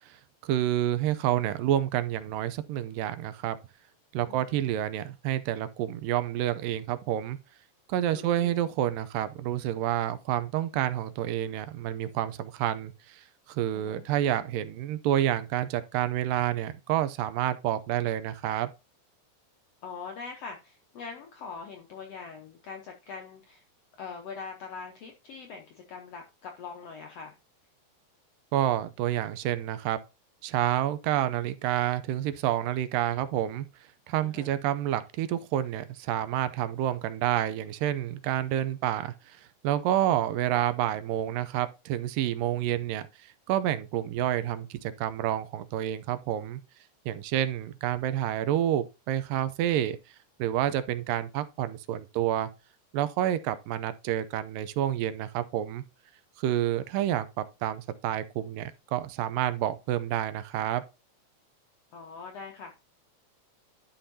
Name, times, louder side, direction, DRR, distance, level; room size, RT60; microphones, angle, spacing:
voice 1, 0.4-3.6 4.1-7.4 7.9-18.7 28.5-30.0 30.4-33.7 34.1-39.1 39.6-43.1 43.5-46.6 47.1-50.0 50.4-52.5 52.9-55.8 56.4-60.8, right 12 dB, 80° right, 2.2 m, -29 dB
voice 2, 4.3-4.6 8.1-8.6 13.7-14.0 19.8-23.6 24.0-27.3 34.2-34.6 61.9-62.8, left 5 dB, 75° left, 1.5 m, -42 dB
11.5 x 5.6 x 2.7 m
omnidirectional pair, 4.1 m